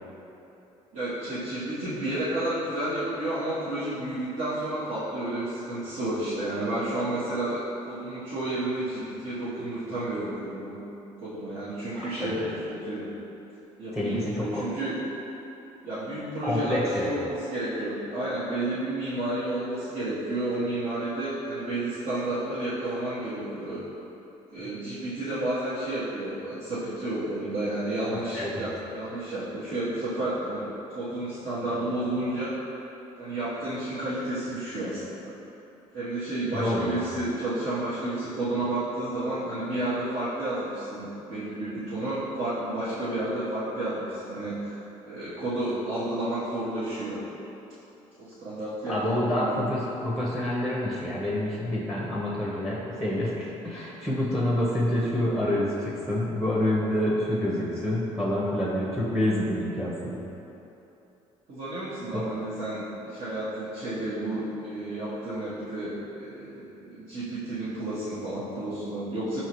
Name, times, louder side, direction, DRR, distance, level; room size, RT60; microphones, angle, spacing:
voice 1, 0.9-10.8 11.2-13.1 13.8-15.0 15.8-23.8 24.5-32.5 33.2-35.3 35.9-44.8 45.1-47.2 48.2-49.7 53.7-53.9 61.5-69.4, right 1 dB, 55° right, -12 dB, 1.1 m, -31 dB
voice 2, 11.9-12.5 13.9-14.6 16.4-17.1 28.1-28.7 36.5-37.0 48.9-60.2 62.1-62.3, left 1 dB, ahead, -6 dB, 0.7 m, -28 dB
4.7 x 2.9 x 3.0 m, 3.0 s
supercardioid pair, 65°, 16 cm